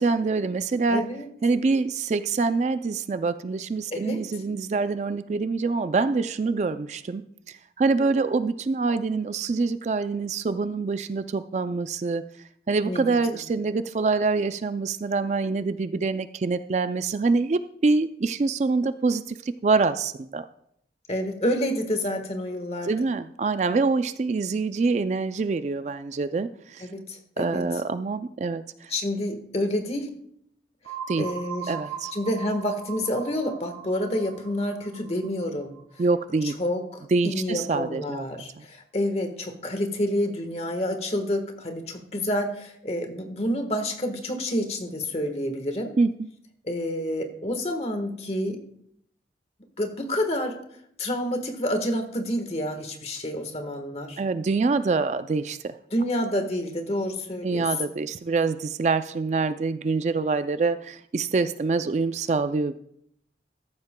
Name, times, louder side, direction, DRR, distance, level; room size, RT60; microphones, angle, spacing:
voice 1, 0.0-1.0 1.4-7.2 7.5-12.2 12.7-20.4 22.8-26.8 27.4-28.9 31.1-31.3 31.7-32.1 36.0-36.6 37.1-38.2 46.0-46.3 54.2-55.7 57.4-62.8, right 4 dB, 40° right, 11 dB, 0.3 m, -25 dB
voice 2, 0.9-1.3 3.9-4.2 12.8-13.0 13.3-13.4 21.1-22.9 26.8-27.6 28.9-30.1 31.2-31.7 32.1-35.7 36.6-45.9 46.6-48.6 49.8-50.6 51.0-54.2 55.9-57.7, left 1 dB, 35° left, 6 dB, 1.3 m, -28 dB
sound 1, 30.8-36.5, right 7 dB, 85° right, 1.3 m, -40 dB
14.0 x 12.0 x 2.2 m, 0.72 s
head